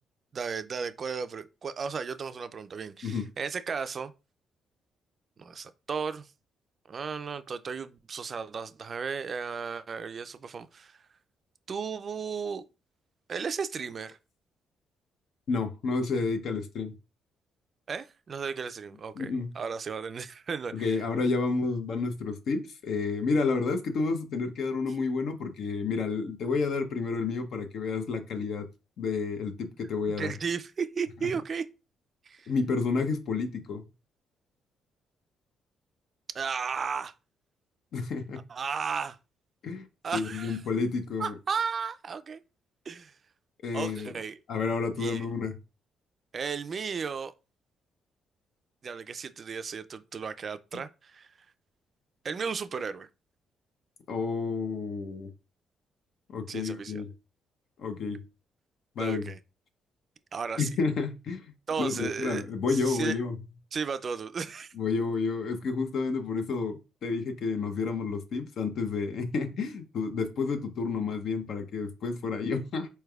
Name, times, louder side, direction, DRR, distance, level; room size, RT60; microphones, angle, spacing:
voice 1, 0.3-4.1 5.4-6.3 6.9-11.0 11.7-12.6 13.3-14.2 17.9-21.0 30.2-31.7 32.3-32.5 36.3-37.1 38.5-39.2 40.0-40.6 41.2-42.4 42.9-43.1 43.7-44.4 45.0-45.3 46.3-47.3 48.8-51.3 52.2-53.1 56.5-57.0 59.0-59.4 60.3-60.7 61.7-62.4 62.7-63.2 63.7-64.7, right 5 dB, 45° right, 0.3 m, -34 dB
voice 2, 15.5-16.9 19.2-19.5 20.7-28.7 29.0-30.3 32.5-33.9 37.9-38.4 39.6-39.9 40.1-41.3 43.6-44.1 44.5-45.6 54.1-55.3 56.3-57.1 57.8-58.2 59.0-59.3 60.6-61.5 61.8-63.4 64.7-72.9, left 4 dB, 70° left, 0.7 m, -30 dB
4.3 x 3.2 x 2.3 m
cardioid pair, 90°, 0 cm